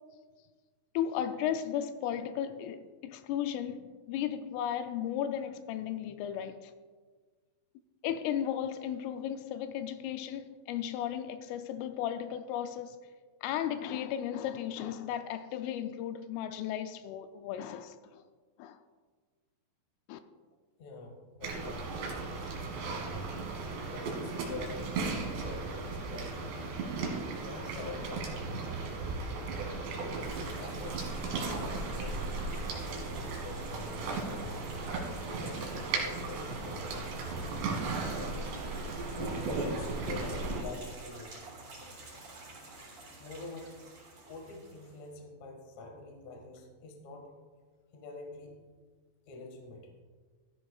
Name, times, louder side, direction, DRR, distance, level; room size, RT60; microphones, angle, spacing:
voice 1, 0.9-6.7 8.0-13.0 13.4-18.2 18.6-18.8 20.1-20.2, left 10 dB, 85° left, 3.1 m, -35 dB
voice 2, 20.8-22.0 23.5-26.6 27.4-29.0 29.9-32.3 32.9-34.8 35.3-37.2 38.1-38.4 38.9-41.4 43.2-43.7 44.3-47.3 47.9-48.6 49.3-49.9, left 3 dB, 60° left, 1.9 m, -46 dB
sound 1, 21.4-40.6, right 3 dB, 65° right, 3.9 m, -36 dB
sound 2, 30.3-45.1, right 2 dB, 35° right, 4.2 m, -50 dB
13.5 x 13.5 x 2.3 m
omnidirectional pair, 5.7 m